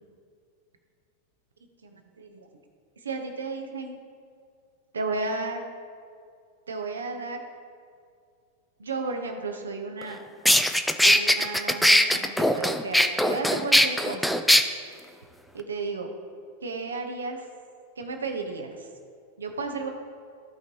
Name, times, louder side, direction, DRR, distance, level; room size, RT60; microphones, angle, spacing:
voice 1, 1.8-2.5 3.0-4.0 4.9-5.6 6.7-7.4 8.8-10.2 11.0-14.4 15.5-16.1 16.6-17.5 18.0-18.9 19.4-19.9, right 3 dB, 70° right, 4 dB, 1.1 m, -33 dB
sound 1, 10.0-10.1 10.5-14.6, equal, ahead, 0.5 m, -20 dB
15.5 x 5.4 x 3.0 m, 2.2 s
figure-of-eight pair, 90°, 0 cm